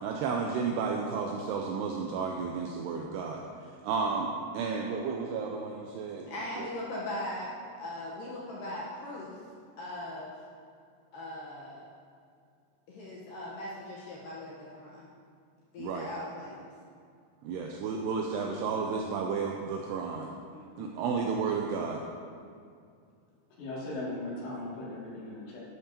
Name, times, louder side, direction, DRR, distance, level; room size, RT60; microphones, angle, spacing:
voice 1, 0.0-3.4 3.8-4.3 4.5-6.7 15.8-16.1 17.4-20.3 20.8-22.0, right 5 dB, 80° right, 1 dB, 2.5 m, -32 dB
voice 2, 6.3-7.5 7.8-9.4 9.8-10.3 11.1-11.8 12.9-15.1 15.7-16.7 20.5-21.0, left 1 dB, 65° left, -5 dB, 2.3 m, -39 dB
voice 3, 23.6-25.6, left 2 dB, 85° left, -8 dB, 4.9 m, -38 dB
11.5 x 11.0 x 2.9 m, 2.3 s
omnidirectional pair, 5.0 m